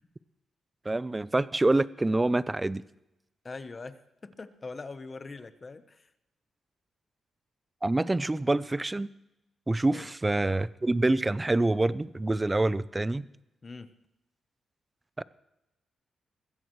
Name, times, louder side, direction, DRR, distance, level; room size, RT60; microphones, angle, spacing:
voice 1, 0.9-2.8 7.8-9.1 9.7-13.3 15.2-15.3, right 2 dB, 15° right, 17 dB, 0.4 m, -26 dB
voice 2, 3.4-6.1 9.9-10.1 13.6-13.9, left 3 dB, 30° left, 11 dB, 0.9 m, -42 dB
21.5 x 15.5 x 3.1 m, 0.91 s
cardioid pair, 120°, 0 cm